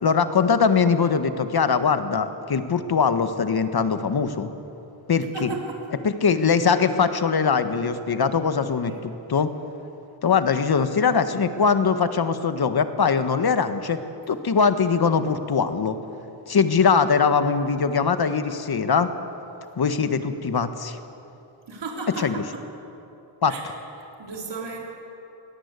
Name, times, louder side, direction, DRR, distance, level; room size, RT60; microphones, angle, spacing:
voice 1, 0.0-4.5 5.1-5.5 6.0-9.5 10.2-14.0 14.3-16.0 16.5-19.1 19.8-21.0 22.2-22.4 23.4-23.5, left 5 dB, 50° left, 9 dB, 1.5 m, -21 dB
voice 2, 5.2-5.8 8.9-9.0 17.5-17.7 21.7-22.4 23.5-23.6 24.0-24.8, right 4 dB, 55° right, -1 dB, 3.8 m, -35 dB
23.5 x 17.5 x 8.3 m, 3.0 s
cardioid pair, 95°, 50 cm